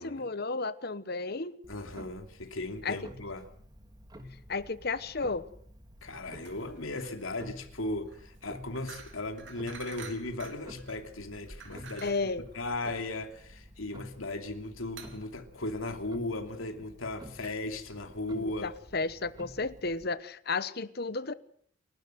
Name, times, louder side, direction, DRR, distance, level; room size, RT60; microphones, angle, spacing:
voice 1, 0.0-1.6 2.8-3.0 4.5-5.5 12.0-12.5 18.3-21.3, left 3 dB, 50° left, 1.1 m, -33 dB
Clock, 1.6-20.1, equal, 20° right, 2.0 m, -51 dB
voice 2, 1.7-3.4 6.0-12.1 12.5-18.7, left 2 dB, 85° left, 2.9 m, -37 dB
sound 1, 6.4-16.3, right 5 dB, 60° right, 3.1 m, -51 dB
30.0 x 12.5 x 7.9 m
head